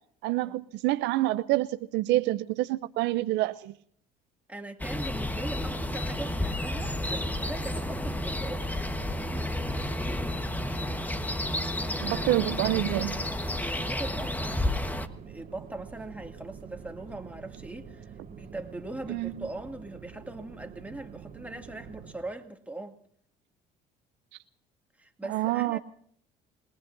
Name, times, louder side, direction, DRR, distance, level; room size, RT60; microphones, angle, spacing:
voice 1, 0.2-3.7 12.0-13.3 19.1-19.5 25.3-25.8, right 17 dB, 75° right, 0.5 m, -27 dB
voice 2, 4.5-8.7 11.7-12.2 13.5-14.9 15.2-23.0 25.0-25.8, right 2 dB, 10° right, 2.2 m, -41 dB
sound 1, 4.8-15.1, left 1 dB, 10° left, 1.2 m, -31 dB
sound 2, 5.5-22.1, right 6 dB, 50° right, 2.0 m, -46 dB
28.5 x 19.0 x 2.6 m
supercardioid pair, 80°, 18 cm